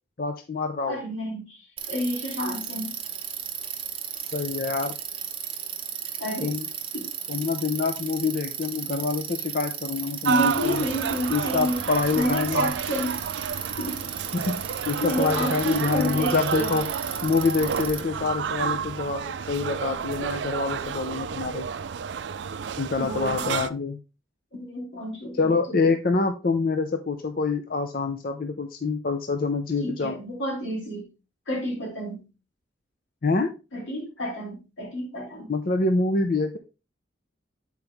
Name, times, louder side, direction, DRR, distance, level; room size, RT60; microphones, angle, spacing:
voice 1, 0.2-1.0 4.3-4.9 6.4-6.7 7.3-10.8 11.3-12.6 14.3-16.9 17.2-21.7 22.8-24.0 25.3-30.2 33.2-33.5 35.5-36.6, left 4 dB, 50° left, 6 dB, 0.6 m, -26 dB
voice 2, 0.9-2.9 6.2-6.5 6.9-7.1 10.3-11.8 12.1-13.2 13.8-14.0 15.0-16.8 23.0-23.5 24.5-25.9 29.8-31.1 31.5-32.2 33.7-35.5, equal, 85° left, 0 dB, 2.8 m, -30 dB
Bicycle, 1.8-18.0, right 9 dB, 30° right, 0.9 m, -35 dB
sound 1, 10.2-23.7, right 6 dB, 65° right, 0.4 m, -30 dB
8.8 x 4.7 x 3.3 m, 0.29 s
head